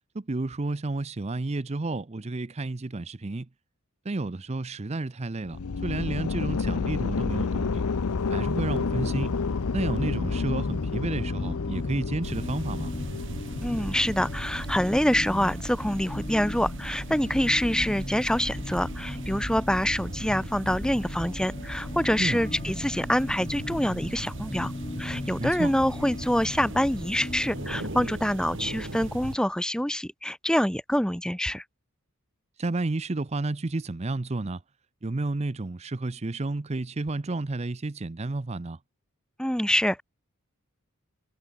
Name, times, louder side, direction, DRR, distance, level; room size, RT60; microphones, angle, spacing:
voice 1, 0.1-3.5 4.0-7.8 8.3-9.3 9.7-12.9 22.2-22.4 25.4-25.7 32.6-34.6 35.0-38.8, right 2 dB, 30° right, 0.6 m, -31 dB
sound 1, 5.5-15.4, left 4 dB, 90° left, 0.6 m, -30 dB
sound 2, 8.6-28.0, left 2 dB, 25° left, 0.6 m, -39 dB
sound 3, 12.2-29.4, right 1 dB, 60° right, 2.7 m, -37 dB
voice 2, 13.6-24.7 25.0-31.6 39.4-40.0, equal, 5° left, 1.3 m, -26 dB
head